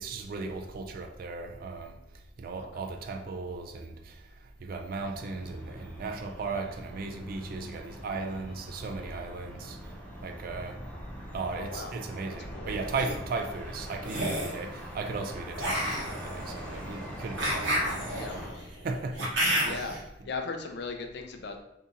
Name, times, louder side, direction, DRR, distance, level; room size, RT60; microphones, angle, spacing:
voice 1, 0.0-2.0 2.4-9.9 10.2-10.8 11.3-18.4 18.8-19.8, right 3 dB, 50° right, 0.3 m, -37 dB
sound 1, 4.9-18.5, equal, 10° left, 0.6 m, -43 dB
voice 2, 11.6-11.9 12.5-12.7 18.2-18.7 19.6-20.0 20.2-21.6, left 4 dB, 60° left, 0.4 m, -38 dB
sound 2, 12.7-13.1 14.0-14.6 15.6-20.0, equal, 70° right, 1.0 m, -31 dB
2.8 x 2.7 x 3.6 m
head